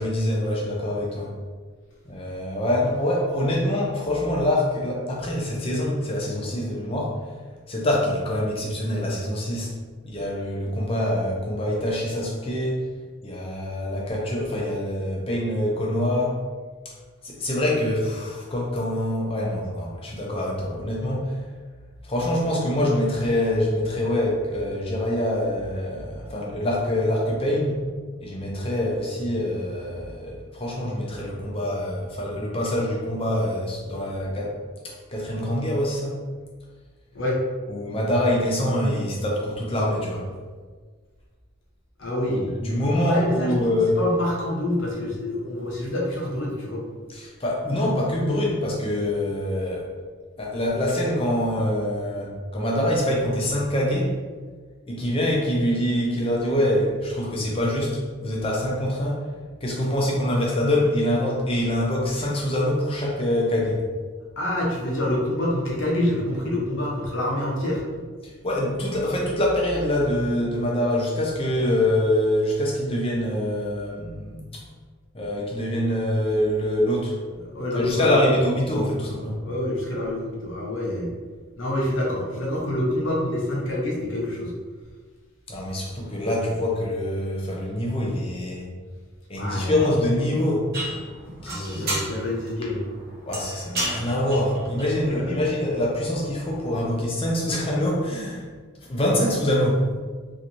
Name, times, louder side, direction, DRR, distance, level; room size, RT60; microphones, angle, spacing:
voice 1, 0.0-1.3 2.1-7.2 7.7-9.7 10.0-12.8 13.2-16.4 16.8-16.9 17.2-21.4 22.0-27.8 28.2-34.6 34.8-36.2 37.7-40.3 42.6-44.0 47.1-49.9 50.4-54.2 54.9-59.2 59.6-63.8 68.2-74.6 75.1-77.2 77.7-79.4 85.5-88.7 89.3-90.7 91.4-92.0 93.3-98.5 98.8-99.8, left 1 dB, 25° left, -2 dB, 0.5 m, -25 dB
voice 2, 42.0-42.5 43.0-46.8 64.4-68.0 77.5-78.4 79.4-81.1 81.6-84.5 89.3-89.7 91.4-92.9 95.1-95.4, left 1 dB, 60° left, -3 dB, 0.8 m, -27 dB
sound 1, 90.7-97.0, right 1 dB, 45° right, 0.8 m, -34 dB
3.1 x 2.9 x 2.6 m, 1.5 s
head